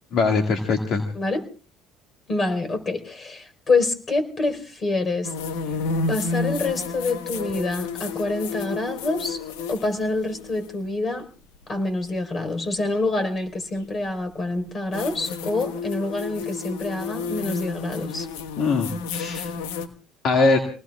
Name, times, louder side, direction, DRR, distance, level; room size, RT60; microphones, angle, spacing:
voice 1, 0.1-1.0 18.6-19.5 20.2-20.6, left 3 dB, 60° left, 3 dB, 2.0 m, -21 dB
voice 2, 1.1-1.5 2.3-5.3 6.1-9.4 9.7-11.2 11.7-18.3, left 2 dB, 35° left, 8 dB, 4.4 m, -26 dB
sound 1, 5.2-10.7 12.8-12.9 14.9-19.9, left 4 dB, 80° left, 1.3 m, -31 dB
28.0 x 19.5 x 2.4 m, 0.36 s
hypercardioid pair, 70°, 0 cm